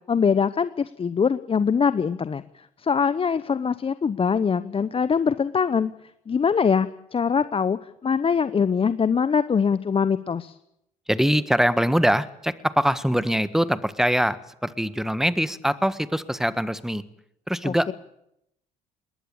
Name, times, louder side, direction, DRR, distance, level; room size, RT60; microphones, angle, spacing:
voice 1, 0.1-5.9 6.3-10.6 17.6-17.9, left 6 dB, 30° left, 14 dB, 0.9 m, -23 dB
voice 2, 11.1-17.0 17.5-17.9, equal, ahead, 14 dB, 1.5 m, -23 dB
21.5 x 18.5 x 8.7 m, 0.80 s
hypercardioid pair, 60°, 18 cm